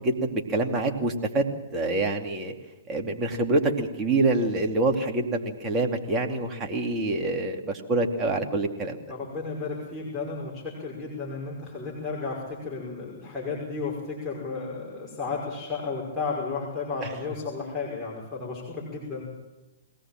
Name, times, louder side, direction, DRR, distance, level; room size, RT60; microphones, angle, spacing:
voice 1, 0.0-1.5 1.7-2.5 2.9-9.0, right 2 dB, 20° right, 2 dB, 2.6 m, -26 dB
voice 2, 9.1-19.2, left 4 dB, 10° left, -6 dB, 5.8 m, -33 dB
22.0 x 18.0 x 7.6 m, 1.1 s
figure-of-eight pair, 120°, 0 cm